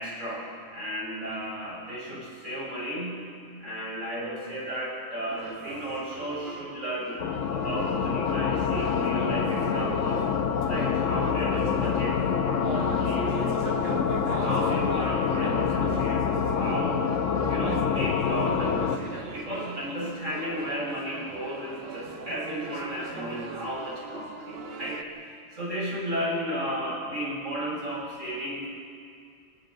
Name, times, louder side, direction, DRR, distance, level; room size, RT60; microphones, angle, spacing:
voice 1, 0.0-3.2 3.6-7.2 7.5-10.2 10.6-13.9 14.3-17.1 17.5-28.7, equal, 85° right, -4 dB, 7.2 m, -34 dB
sound 1, 5.3-25.0, right 3 dB, 55° right, 1.4 m, -40 dB
sound 2, 7.2-19.0, left 7 dB, 80° left, 1.3 m, -26 dB
27.0 x 19.0 x 5.3 m, 2.4 s
omnidirectional pair, 1.3 m